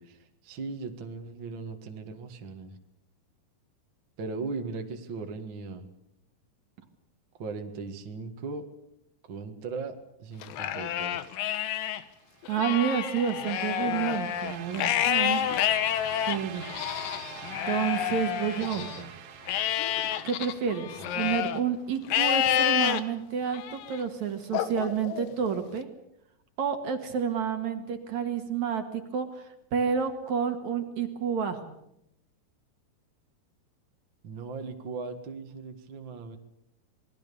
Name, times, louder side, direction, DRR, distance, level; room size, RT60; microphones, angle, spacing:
voice 1, 0.0-2.8 4.2-5.9 7.4-8.6 9.3-11.4 16.8-16.9 18.5-19.1 21.0-21.3 34.2-36.4, right 4 dB, 40° right, 5 dB, 2.0 m, -38 dB
Livestock farm animals working animals, 10.4-12.0 12.4-19.0 19.5-21.6 22.1-23.0 23.5-24.0 24.5-25.6, left 11 dB, 70° left, 2.7 m, -29 dB
sound 1, 12.3-21.2, right 8 dB, 80° right, 3.8 m, -45 dB
voice 2, 12.5-15.4 16.2-16.7 17.7-18.9 19.7-25.9 26.6-31.8, right 7 dB, 55° right, 6 dB, 2.8 m, -30 dB
27.5 x 21.0 x 7.0 m, 0.81 s
omnidirectional pair, 4.3 m